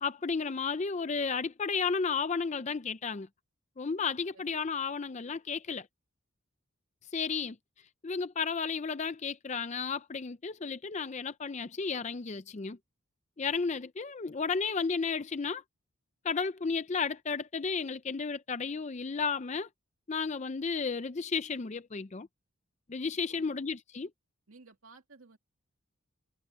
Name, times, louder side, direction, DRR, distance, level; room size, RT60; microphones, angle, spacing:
voice 1, 0.0-3.3 3.8-5.9 7.1-7.6 8.0-12.8 13.4-15.6 16.2-19.7 20.1-22.3 22.9-24.1, left 5 dB, 30° left, 0.4 m, -33 dB
voice 2, 23.3-23.7 24.5-25.4, right 3 dB, 75° right, 2.3 m, -56 dB
head